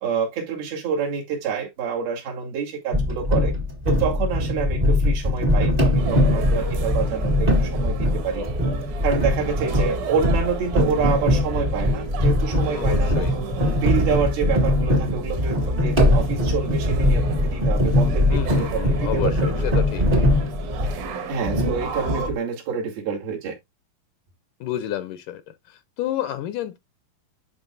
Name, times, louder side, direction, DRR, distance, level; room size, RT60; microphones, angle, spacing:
voice 1, 0.0-3.5 3.9-8.4 9.0-13.5 13.8-19.6 21.3-23.6, right 6 dB, 80° right, 4.2 m, -27 dB
sound 1, 2.9-21.1 21.4-22.4, left 1 dB, 35° right, 0.8 m, -21 dB
sound 2, 6.0-22.3, right 5 dB, 65° right, 2.6 m, -35 dB
voice 2, 12.7-13.3 18.3-20.3 24.6-26.8, left 12 dB, 80° left, 1.9 m, -30 dB
11.0 x 4.5 x 2.5 m
omnidirectional pair, 4.2 m